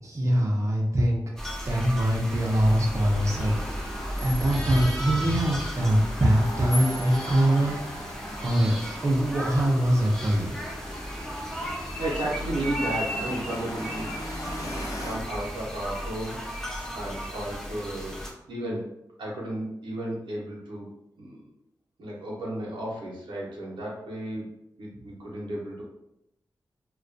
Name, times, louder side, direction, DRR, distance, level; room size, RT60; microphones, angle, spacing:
voice 1, 0.0-1.2 1.7-3.5 4.2-7.7 8.4-8.8 9.0-10.6, equal, 40° right, -2 dB, 0.6 m, -23 dB
sound 1, 1.4-18.3, equal, 5° left, 0.6 m, -35 dB
sound 2, 2.3-15.1, left 1 dB, 45° left, 0.7 m, -39 dB
voice 2, 11.7-18.2 18.5-18.8 19.2-20.9 21.2-21.4 22.0-24.5 24.8-25.8, right 1 dB, 80° right, -4 dB, 0.7 m, -34 dB
2.2 x 2.2 x 2.5 m, 0.84 s
cardioid pair, 45°, 8 cm